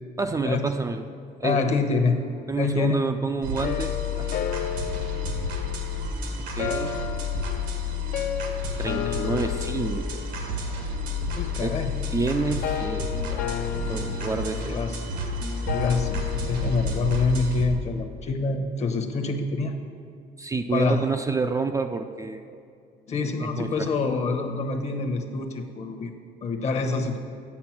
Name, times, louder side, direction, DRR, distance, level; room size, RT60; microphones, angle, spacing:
voice 1, 0.2-1.0 1.4-1.7 2.5-4.3 6.6-6.9 8.8-10.3 11.6-11.8 12.1-14.8 20.4-22.6 23.2-23.9, right 4 dB, 20° right, 6 dB, 0.4 m, -29 dB
voice 2, 1.4-2.2 2.6-3.0 11.4-12.0 14.1-14.2 14.5-15.0 15.7-19.7 20.7-21.0 23.1-26.1 26.4-27.2, left 4 dB, 40° left, 6 dB, 1.0 m, -26 dB
sound 1, 3.4-17.7, left 3 dB, 90° right, 1.4 m, -30 dB
sound 2, 3.6-17.1, left 8 dB, 60° left, 0.7 m, -34 dB
8.5 x 6.9 x 6.0 m, 2.4 s
cardioid pair, 110°, 17 cm